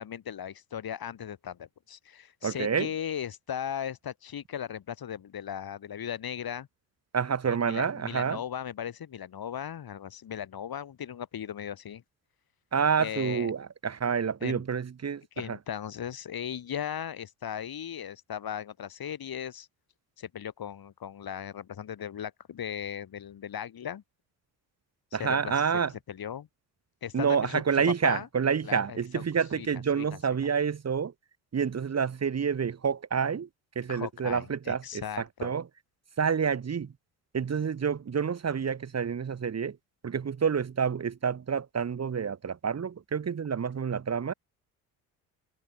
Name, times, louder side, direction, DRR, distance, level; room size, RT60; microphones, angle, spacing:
voice 1, 0.0-6.7 7.5-12.0 13.0-13.5 14.4-14.6 15.4-19.7 20.2-24.0 25.2-25.5 26.1-26.5 27.0-28.3 28.6-29.2 29.6-30.2 33.9-35.5, left 9 dB, 55° left, 6.4 m, -37 dB
voice 2, 2.4-2.9 7.1-8.4 12.7-15.2 15.5-15.6 25.1-25.9 27.1-31.1 31.5-33.5 33.8-35.6 36.2-36.9 37.3-39.8 40.0-44.3, right 6 dB, 35° right, 1.8 m, -28 dB
supercardioid pair, 65°, 44 cm